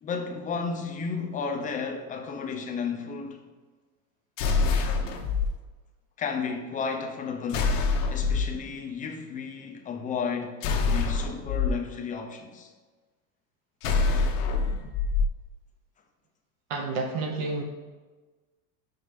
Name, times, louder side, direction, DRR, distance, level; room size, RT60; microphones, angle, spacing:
voice 1, 0.0-3.4 6.2-7.8 8.1-10.6 10.9-12.7, left 5 dB, 15° left, 0.6 m, -33 dB
sound 1, 4.4-5.5 7.5-8.5 10.6-11.7 13.8-15.3, left 4 dB, 65° left, 1.0 m, -25 dB
voice 2, 16.7-17.6, right 3 dB, 45° right, 0.8 m, -30 dB
5.2 x 4.3 x 5.1 m
supercardioid pair, 135°, 49 cm